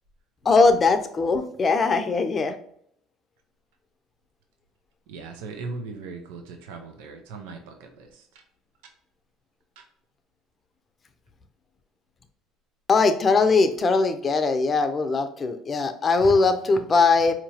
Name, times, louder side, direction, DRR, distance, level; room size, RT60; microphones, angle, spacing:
voice 1, 0.4-2.5 12.9-17.3, left 4 dB, 35° left, 8 dB, 0.6 m, -20 dB
voice 2, 5.1-8.4 8.8-8.9 9.8-9.9, right 4 dB, 85° right, 5 dB, 0.6 m, -39 dB
4.4 x 2.9 x 2.8 m, 0.67 s
supercardioid pair, 90°, 0 cm